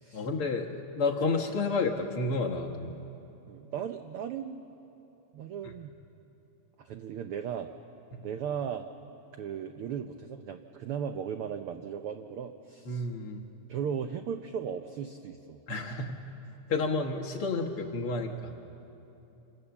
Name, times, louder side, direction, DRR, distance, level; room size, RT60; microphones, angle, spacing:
voice 1, 0.1-2.9 5.6-5.7 12.9-13.4 15.7-16.2 16.7-18.5, left 3 dB, 55° left, 1 dB, 1.9 m, -30 dB
voice 2, 3.5-4.6 5.3-5.9 6.8-7.7 8.2-8.9 9.4-13.1 13.7-15.6, right 8 dB, 80° right, 7 dB, 1.2 m, -36 dB
26.5 x 26.5 x 7.1 m, 3.0 s
omnidirectional pair, 3.5 m